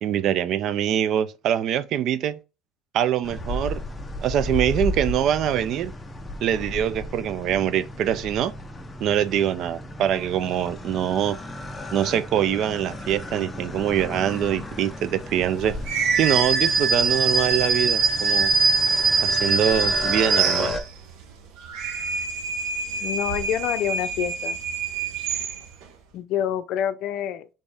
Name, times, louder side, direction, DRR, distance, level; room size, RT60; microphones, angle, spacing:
voice 1, 0.0-2.4 2.9-3.8 4.2-5.9 6.4-8.5 9.0-11.4 11.9-15.8 16.2-18.5 19.2-20.7, right 10 dB, 50° right, 0.4 m, -24 dB
sound 1, 3.2-20.8, left 1 dB, 10° left, 0.6 m, -34 dB
sound 2, 15.8-21.1 21.6-25.8, right 4 dB, 70° right, 0.9 m, -23 dB
voice 2, 23.0-24.6 26.1-27.5, left 10 dB, 55° left, 0.5 m, -27 dB
4.2 x 3.6 x 3.4 m
cardioid pair, 150°, 0 cm